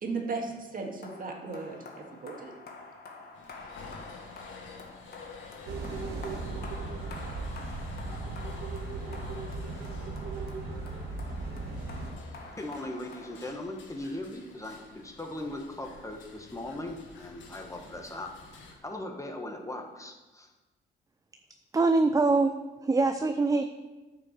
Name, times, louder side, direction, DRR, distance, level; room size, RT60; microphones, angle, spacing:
voice 1, 0.0-1.8 2.2-2.5, right 4 dB, 45° right, 1 dB, 2.0 m, -35 dB
sound 1, 1.0-14.0, left 3 dB, 55° left, 1.7 m, -48 dB
sound 2, 3.3-18.8, left 4 dB, 75° left, 1.6 m, -51 dB
sound 3, 5.6-12.1, right 3 dB, 85° right, 2.1 m, -37 dB
voice 2, 12.6-18.3 18.6-20.5, left 1 dB, 15° left, 3 dB, 1.3 m, -39 dB
voice 3, 21.7-22.5 22.8-23.6, right 3 dB, 15° right, 8 dB, 0.5 m, -23 dB
9.3 x 5.4 x 6.7 m, 1.2 s
cardioid pair, 90°, 20 cm